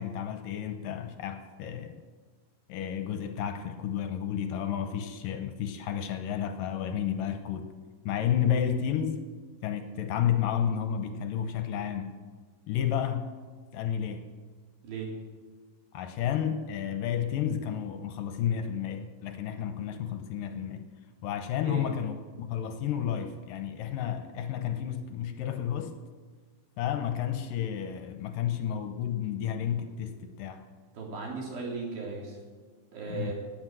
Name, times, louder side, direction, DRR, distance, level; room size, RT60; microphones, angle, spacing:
voice 1, 0.0-2.0 2.7-7.7 8.1-9.3 9.6-12.2 12.7-13.3 13.7-14.3 15.9-20.9 21.2-26.0 26.8-30.6 33.1-33.3, left 9 dB, 75° left, 2.3 m, -31 dB
voice 2, 14.8-15.1 21.6-21.9 30.9-32.4 32.9-33.3, right 4 dB, 75° right, 4.9 m, -36 dB
19.0 x 8.6 x 7.7 m
omnidirectional pair, 4.3 m